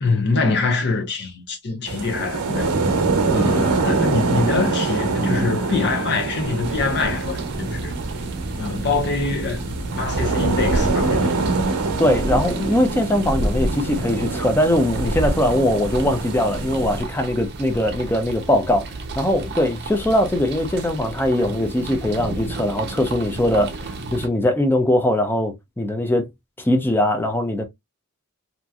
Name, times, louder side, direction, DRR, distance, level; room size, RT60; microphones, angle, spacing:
voice 1, 0.0-2.7 3.3-7.9 8.6-11.4, left 4 dB, 50° left, 0.8 m, -24 dB
sound 1, 1.9-17.0, right 3 dB, 90° right, 0.7 m, -24 dB
sound 2, 6.6-24.3, right 2 dB, 50° right, 0.6 m, -33 dB
voice 2, 12.0-26.3 26.6-27.6, left 1 dB, 10° left, 0.5 m, -21 dB
2.9 x 2.5 x 2.2 m
head